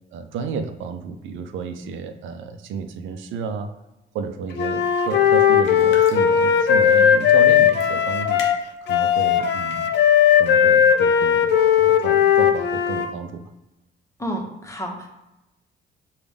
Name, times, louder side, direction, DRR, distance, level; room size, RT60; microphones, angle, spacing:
voice 1, 0.1-3.7 4.1-8.5 8.8-9.9 10.3-13.5, right 5 dB, 80° right, 7 dB, 0.5 m, -32 dB
Wind instrument woodwind instrument, 4.6-13.1, left 8 dB, 60° left, 0.4 m, -17 dB
sound 1, 5.7-6.3 6.6-6.7 7.7-7.9 8.4-8.9 9.5-10.0, left 3 dB, 90° left, 0.8 m, -36 dB
voice 2, 14.2-15.1, equal, 15° left, 1 dB, 0.9 m, -30 dB
5.0 x 2.3 x 3.5 m, 0.96 s
cardioid pair, 90°, 20 cm